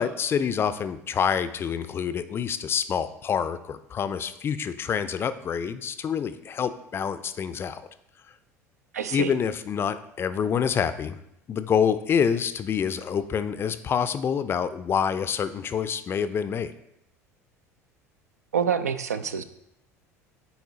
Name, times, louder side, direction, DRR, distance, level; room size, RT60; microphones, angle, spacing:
voice 1, 0.0-7.8 9.1-11.2 11.5-16.7, left 7 dB, 30° left, 12 dB, 0.4 m, -27 dB
voice 2, 8.9-9.3 18.5-19.4, right 7 dB, 75° right, 11 dB, 0.4 m, -26 dB
9.6 x 4.1 x 2.8 m, 0.79 s
figure-of-eight pair, 70°, 9 cm